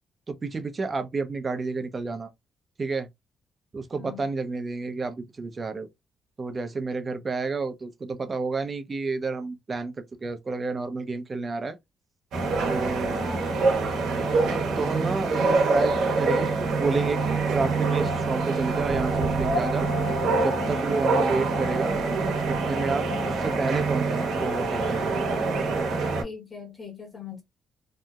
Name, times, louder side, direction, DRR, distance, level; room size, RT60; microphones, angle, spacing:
voice 1, 0.3-2.3 2.8-3.1 3.7-5.9 6.4-11.8 12.7-13.2 14.4-19.9 20.4-22.0 22.5-25.4, right 4 dB, 30° right, 0.5 m, -30 dB
sound 1, 12.3-26.2, right 3 dB, 85° right, 0.8 m, -25 dB
voice 2, 26.2-27.4, left 4 dB, 25° left, 1.1 m, -40 dB
2.7 x 2.0 x 2.3 m
cardioid pair, 115°, 0 cm